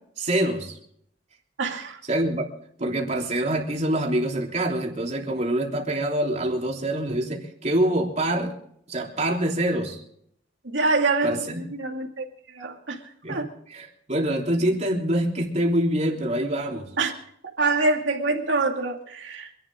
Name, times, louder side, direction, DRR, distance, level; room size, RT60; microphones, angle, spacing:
voice 1, 0.2-0.7 2.1-2.5 2.8-8.5 8.9-10.0 11.2-11.6 13.2-13.4 13.7-16.9, right 1 dB, 40° right, 3.3 m, -25 dB
voice 2, 1.6-2.0 10.6-12.2 12.5-13.0 13.3-13.5 17.0-17.1 17.6-19.5, right 3 dB, 85° right, 2.3 m, -25 dB
26.5 x 11.5 x 3.7 m
head